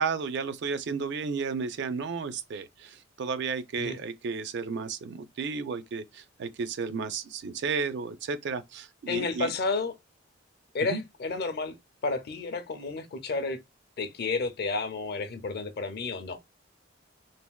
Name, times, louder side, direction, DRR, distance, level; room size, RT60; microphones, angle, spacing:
voice 1, 0.0-9.5 10.9-11.0, right 5 dB, 65° right, 0.4 m, -33 dB
voice 2, 9.1-9.9 10.7-11.8 12.0-13.6 14.0-16.4, left 3 dB, 55° left, 0.5 m, -31 dB
3.3 x 2.2 x 2.2 m
head